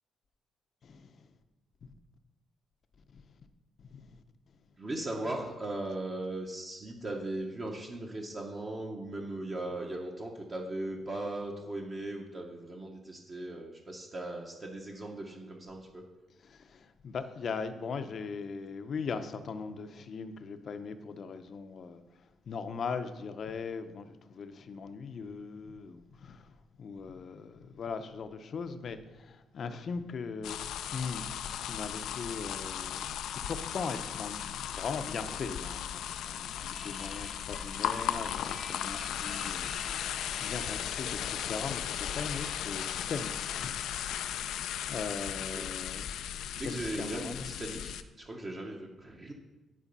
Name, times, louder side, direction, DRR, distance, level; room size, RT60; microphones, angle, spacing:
voice 1, 0.8-1.2 1.8-1.9 3.1-3.2 3.9-4.2 16.5-22.0 22.5-30.6 30.9-31.3 31.6-43.7 44.0-46.1 46.6-47.4, left 5 dB, 50° left, 0.6 m, -40 dB
voice 2, 4.8-16.0 45.5-45.7 46.6-49.3, right 1 dB, 30° right, 1.0 m, -38 dB
sound 1, 30.4-48.0, left 10 dB, 90° left, 0.4 m, -36 dB
sound 2, 36.7-43.3, left 2 dB, 15° left, 0.7 m, -50 dB
9.9 x 4.9 x 5.4 m
cardioid pair, 135°, 0 cm